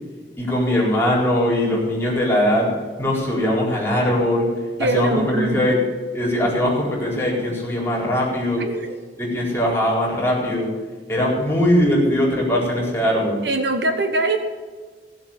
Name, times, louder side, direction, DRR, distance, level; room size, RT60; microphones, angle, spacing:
voice 1, 0.4-2.7 3.0-4.5 4.8-5.8 6.1-8.7 9.2-10.7 11.1-13.4, left 1 dB, 15° left, -4 dB, 4.4 m, -20 dB
voice 2, 4.8-5.6 8.6-9.0 13.4-14.4, right 2 dB, 65° right, 6 dB, 1.4 m, -22 dB
16.5 x 7.8 x 7.4 m, 1.5 s
head